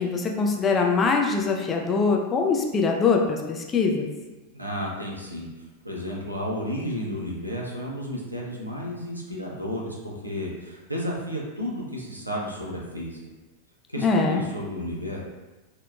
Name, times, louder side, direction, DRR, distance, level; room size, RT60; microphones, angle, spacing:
voice 1, 0.0-4.1 14.0-14.4, left 4 dB, 20° left, 1 dB, 0.3 m, -23 dB
voice 2, 4.5-5.5 5.8-13.2 13.9-15.2, equal, 90° right, -3 dB, 0.4 m, -32 dB
2.7 x 2.1 x 2.3 m, 1.1 s
figure-of-eight pair, 90°, 0 cm